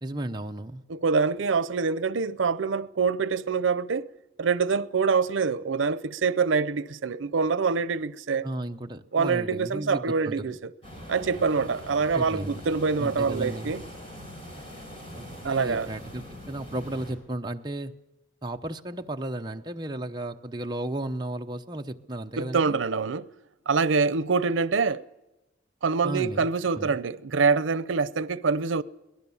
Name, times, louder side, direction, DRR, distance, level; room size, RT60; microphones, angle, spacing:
voice 1, 0.0-0.8 8.4-10.5 12.1-12.6 13.0-13.8 15.2-17.9 18.4-22.8 26.0-26.5 26.7-27.0, right 1 dB, 20° right, 0.8 m, -34 dB
voice 2, 0.9-4.1 4.4-8.5 9.1-10.6 11.1-13.8 15.4-15.9 22.4-23.3 23.7-25.0 25.8-28.8, right 5 dB, 90° right, 0.6 m, -25 dB
sound 1, 10.8-17.1, equal, 30° left, 5.2 m, -42 dB
23.0 x 18.5 x 7.1 m
head